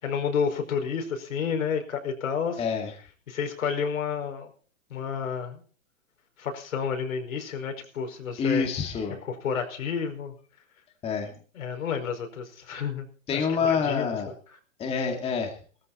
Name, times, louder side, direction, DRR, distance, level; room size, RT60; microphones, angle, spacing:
voice 1, 0.0-2.6 3.3-4.5 4.9-5.6 6.4-8.6 9.2-10.3 11.5-14.1, left 6 dB, 80° left, 5 dB, 5.1 m, -30 dB
voice 2, 2.6-2.9 8.4-9.2 11.0-11.3 13.3-14.3 14.8-15.6, left 5 dB, 15° left, 3 dB, 2.1 m, -27 dB
18.5 x 14.0 x 4.2 m, 0.41 s
hypercardioid pair, 160°, 40 cm